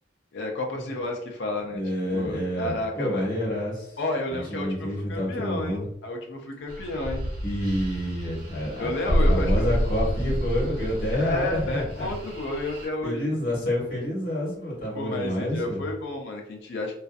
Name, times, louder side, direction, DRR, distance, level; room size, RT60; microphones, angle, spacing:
voice 1, 0.3-1.8 2.1-3.3 4.0-7.3 8.8-9.7 11.1-13.4 14.9-17.0, left 2 dB, 60° left, 1 dB, 0.4 m, -31 dB
voice 2, 1.7-4.0 4.3-5.9 7.4-12.1 13.0-15.8, equal, 45° left, -5 dB, 1.1 m, -28 dB
sound 1, 6.7-12.9, equal, 45° right, 0.7 m, -28 dB
2.5 x 2.4 x 2.3 m, 0.74 s
head